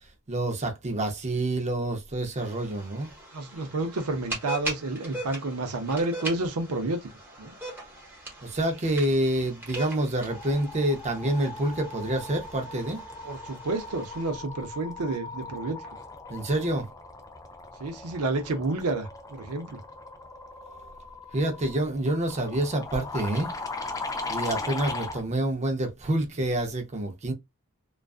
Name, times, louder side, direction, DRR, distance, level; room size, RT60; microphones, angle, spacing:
voice 1, 0.3-3.1 8.4-13.0 16.3-16.9 20.6-20.7 21.3-23.5 24.3-27.3, right 1 dB, 30° right, 0.6 m, -27 dB
sound 1, 2.4-14.3, right 1 dB, 10° right, 0.9 m, -41 dB
voice 2, 3.3-7.0 7.4-7.5 13.2-16.0 17.8-19.8, right 2 dB, 75° right, 0.6 m, -30 dB
sound 2, 10.0-25.2, left 3 dB, 15° left, 0.3 m, -39 dB
2.4 x 2.3 x 2.3 m
head